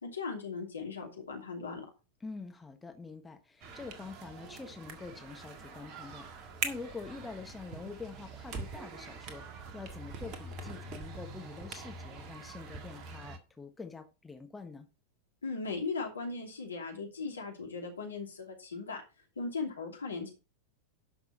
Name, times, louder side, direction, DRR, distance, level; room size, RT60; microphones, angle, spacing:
voice 1, 0.0-1.9 15.4-19.0 19.4-20.3, left 4 dB, 75° left, 2.8 m, -38 dB
voice 2, 2.2-14.9, left 4 dB, 10° left, 1.3 m, -46 dB
sound 1, 3.6-13.4, right 4 dB, 35° right, 1.7 m, -43 dB
12.0 x 6.2 x 4.2 m
figure-of-eight pair, 90°, 0 cm